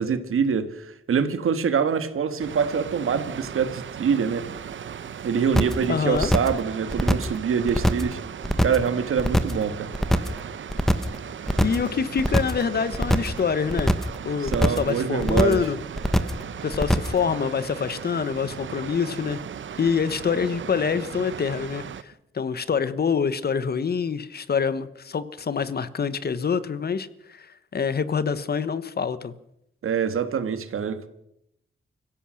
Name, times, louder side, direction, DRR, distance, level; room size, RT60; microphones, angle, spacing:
voice 1, 0.0-4.5 5.2-8.2 8.6-9.9 14.4-15.7 29.8-31.1, right 6 dB, 85° right, 1.7 m, -25 dB
Water, 2.4-22.0, right 8 dB, 65° right, 0.9 m, -37 dB
sound 1, 5.5-5.8 6.1-6.6 6.9-7.4 7.7-8.1 8.4-8.9 9.2-9.6 9.9-10.4 10.7-11.2 11.5-11.9 12.2-12.6 12.9-13.4 13.7-14.2 14.5-14.9 15.2-15.7 16.0-16.4 16.7-17.2, equal, ahead, 1.1 m, -22 dB
voice 2, 5.9-6.3 11.6-13.9 14.2-15.8 16.6-19.4 19.8-29.3, left 6 dB, 50° left, 1.2 m, -26 dB
24.5 x 16.0 x 6.5 m
wide cardioid pair, 140°, 21 cm